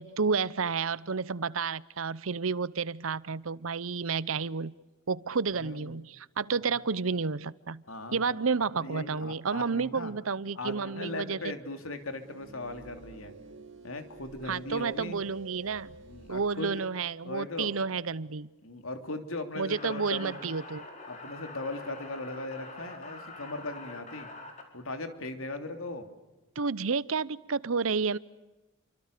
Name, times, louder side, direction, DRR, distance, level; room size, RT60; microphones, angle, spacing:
voice 1, 0.0-4.7 5.1-7.8 8.1-11.5 14.5-15.9 16.3-18.5 19.6-20.9 26.6-28.2, right 5 dB, 85° right, 19 dB, 0.8 m, -31 dB
voice 2, 5.6-6.0 6.6-6.7 7.9-10.1 10.5-13.3 13.8-15.2 16.0-16.8 17.2-17.8 18.6-20.4 21.1-24.3 24.7-26.1, left 2 dB, 85° left, 7 dB, 3.2 m, -38 dB
sound 1, 11.9-16.6, right 4 dB, 60° right, 2.1 m, -49 dB
sound 2, 19.7-24.6, left 2 dB, 35° left, 4.5 m, -45 dB
29.5 x 25.0 x 6.7 m, 1.1 s
head